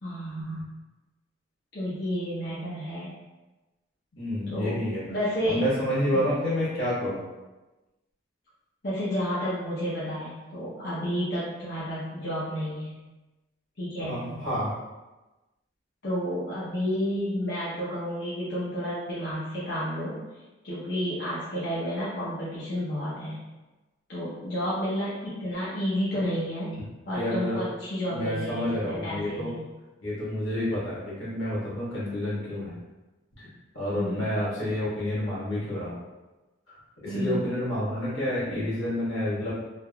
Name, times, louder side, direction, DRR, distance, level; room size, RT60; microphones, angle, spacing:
voice 1, 0.0-0.8 1.7-3.1 4.5-4.8 5.1-5.6 6.1-6.3 8.8-12.9 13.8-14.2 16.0-20.2 20.6-23.4 24.1-26.7 27.1-29.7 34.0-34.3 37.0-37.4, equal, 55° left, -10 dB, 0.7 m, -31 dB
voice 2, 4.2-5.1 5.4-7.2 14.0-14.7 27.1-27.6 28.1-29.5 30.0-32.7 33.4-33.5 33.7-35.9 36.7-36.8 37.0-39.5, left 1 dB, 85° left, -9 dB, 1.5 m, -29 dB
3.3 x 2.4 x 2.3 m, 1.1 s
head